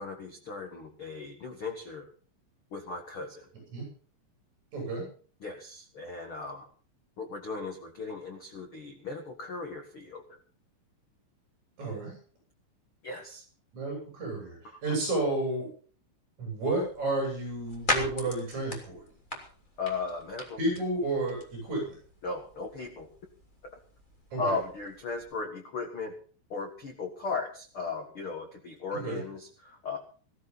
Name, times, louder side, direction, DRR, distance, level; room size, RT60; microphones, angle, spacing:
voice 1, 0.0-2.1 2.7-3.5 5.4-6.6 7.2-10.2 13.0-13.4 14.9-15.0 19.8-20.6 22.2-23.1 24.4-26.1 26.5-30.0, left 4 dB, 75° left, 3 dB, 1.2 m, -37 dB
voice 2, 4.7-5.0 11.8-12.1 13.7-14.6 14.8-15.7 16.4-19.0 20.6-22.0 24.3-24.5 28.9-29.2, right 2 dB, 40° right, -1 dB, 9.0 m, -31 dB
sound 1, 16.6-25.3, left 1 dB, 15° left, 2.2 m, -40 dB
18.5 x 14.0 x 4.2 m, 0.41 s
omnidirectional pair, 5.4 m